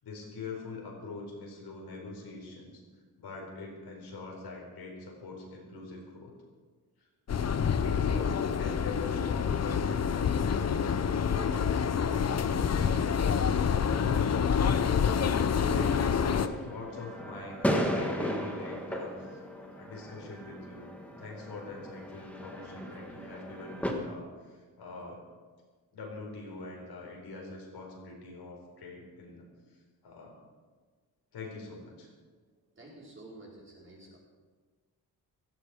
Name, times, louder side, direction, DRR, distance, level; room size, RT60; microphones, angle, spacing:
voice 1, 0.0-2.8 3.2-6.3 7.0-7.1 7.8-14.5 15.5-19.4 19.8-20.9 21.2-25.3 25.9-29.4 30.0-30.3 31.3-32.1, left 3 dB, 85° left, 0 dB, 4.5 m, -43 dB
sound 1, 7.3-16.5, left 7 dB, 40° left, 0.7 m, -27 dB
sound 2, 12.8-23.9, equal, 5° left, 1.8 m, -37 dB
voice 2, 32.7-34.2, right 2 dB, 30° right, -4 dB, 5.0 m, -50 dB
16.5 x 14.0 x 4.9 m, 1.4 s
wide cardioid pair, 135°, 39 cm